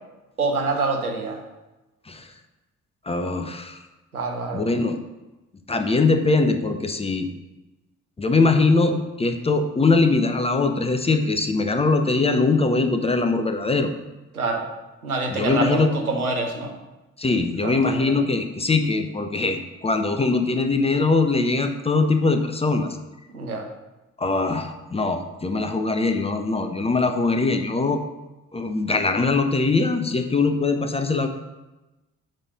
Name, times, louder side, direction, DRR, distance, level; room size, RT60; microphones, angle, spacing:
voice 1, 0.4-1.4 4.1-4.6 14.3-14.7 15.0-16.7 17.6-18.2 23.3-23.6, right 3 dB, 90° right, 2 dB, 0.7 m, -26 dB
voice 2, 3.1-3.8 4.5-5.0 5.7-7.3 8.2-13.9 15.3-15.9 17.2-23.0 24.2-28.0 28.5-31.3, left 3 dB, 15° left, 6 dB, 0.6 m, -22 dB
7.5 x 3.2 x 5.0 m, 1.1 s
figure-of-eight pair, 40°, 42 cm